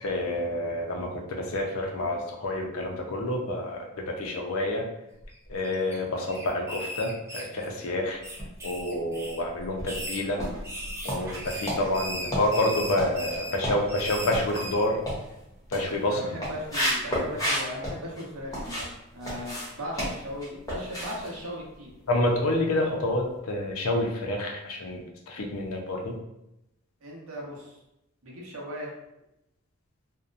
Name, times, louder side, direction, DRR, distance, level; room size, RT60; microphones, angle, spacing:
voice 1, 0.0-1.2 1.5-3.9 4.2-4.9 5.5-8.2 8.6-10.4 11.0-15.0 15.7-16.3 17.1-17.2 22.1-26.1, left 1 dB, 80° left, 0 dB, 0.5 m, -28 dB
sound 1, 5.2-5.9 6.3-7.8 8.2-9.4 9.8-14.8, right 1 dB, 15° right, 0.4 m, -38 dB
sound 2, 8.2-9.0 9.4-18.9 19.2-22.4 22.6-22.9 23.3-23.4, equal, 15° left, 0.7 m, -33 dB
voice 2, 16.1-18.9 19.1-21.9 27.0-27.8 28.2-28.9, equal, 80° right, -3 dB, 0.8 m, -38 dB
2.7 x 2.1 x 2.4 m, 0.87 s
head